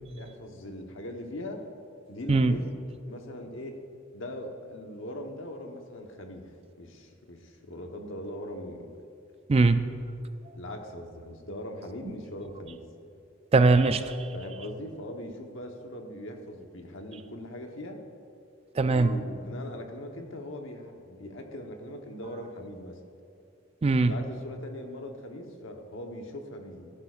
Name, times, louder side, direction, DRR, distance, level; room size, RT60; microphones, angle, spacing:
voice 1, 0.1-1.6 2.1-2.8 3.1-3.8 4.1-6.5 6.8-8.9 10.5-12.8 14.3-18.0 18.9-23.0 24.0-26.9, left 1 dB, 75° left, 3 dB, 1.1 m, -40 dB
voice 2, 9.5-9.9 13.5-14.3 18.8-19.2 23.8-24.1, right 3 dB, 30° right, 10 dB, 0.3 m, -21 dB
15.5 x 11.0 x 2.5 m, 2.6 s
head